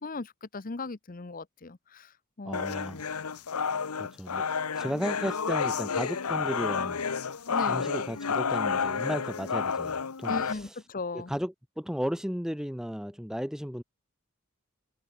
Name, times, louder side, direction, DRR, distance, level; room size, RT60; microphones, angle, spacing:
voice 1, 0.0-2.1 2.4-2.8 7.5-7.9 10.3-11.3, left 3 dB, 40° left, 0.8 m, -37 dB
voice 2, 2.4-3.1 4.0-4.5 4.7-7.4 7.7-10.8 11.1-13.8, equal, ahead, 1.5 m, -35 dB
sound 1, 2.5-10.5, left 6 dB, 90° left, 1.0 m, -30 dB
head